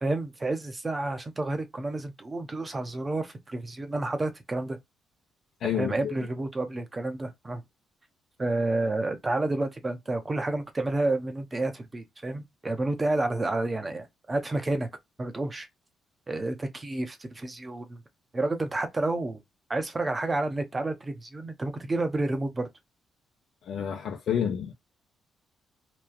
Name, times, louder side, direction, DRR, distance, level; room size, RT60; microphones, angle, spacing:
voice 1, 0.0-4.8 5.7-7.6 8.4-14.9 15.2-15.7 16.3-18.0 18.3-19.4 19.7-22.7, right 2 dB, 25° right, 0.8 m, -30 dB
voice 2, 5.6-6.1 23.6-24.7, left 8 dB, 70° left, 0.6 m, -29 dB
3.1 x 2.3 x 2.2 m
cardioid pair, 90°, 0 cm